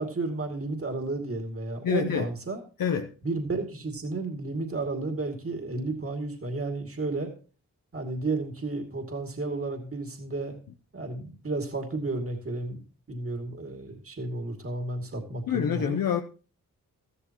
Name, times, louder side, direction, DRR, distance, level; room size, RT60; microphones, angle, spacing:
voice 1, 0.0-2.6 3.2-7.3 7.9-10.6 10.9-12.8 13.1-16.0, right 3 dB, 40° right, 2.5 m, -32 dB
voice 2, 1.8-2.3 2.8-3.1 15.5-16.2, left 8 dB, 75° left, 0.8 m, -26 dB
13.5 x 12.5 x 3.0 m
cardioid pair, 45°, 34 cm